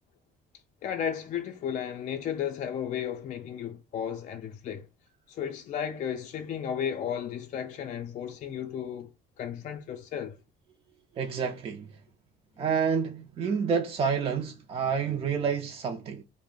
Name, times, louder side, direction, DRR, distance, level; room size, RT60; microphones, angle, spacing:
voice 1, 0.8-4.9 5.3-9.1 9.4-10.4, left 8 dB, 45° left, 0.4 m, -34 dB
voice 2, 11.2-12.0 12.6-16.2, right 6 dB, 35° right, 0.4 m, -29 dB
2.5 x 2.0 x 3.6 m
cardioid pair, 110°, 17 cm